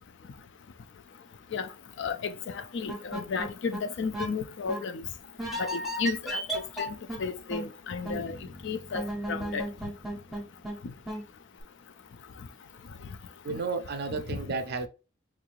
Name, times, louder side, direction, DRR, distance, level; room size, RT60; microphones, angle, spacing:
voice 1, 2.0-5.0 5.6-6.4 6.8-6.9 7.2-8.4 8.6-9.0 9.3-9.6 14.3-14.4, left 5 dB, 60° left, 0.4 m, -33 dB
sound 1, 2.9-3.8 4.1-4.3 4.7-4.8 5.4-7.2 7.5-7.7 8.0-8.2 8.9-10.8 11.1-11.2, right 1 dB, ahead, 0.7 m, -34 dB
Bass guitar, 8.1-12.1, left 1 dB, 40° left, 1.3 m, -52 dB
voice 2, 13.4-14.9, right 4 dB, 50° right, 0.5 m, -32 dB
3.7 x 3.2 x 2.4 m
head